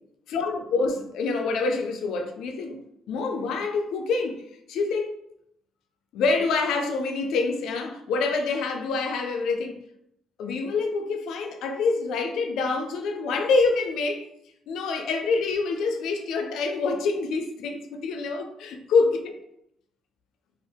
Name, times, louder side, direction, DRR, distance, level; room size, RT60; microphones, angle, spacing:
voice 1, 0.3-2.8 3.1-4.4 4.7-5.1 6.1-9.7 10.4-14.3 14.7-19.3, left 4 dB, 80° left, 0.4 m, -26 dB
2.7 x 2.5 x 3.4 m
cardioid pair, 90°, 0 cm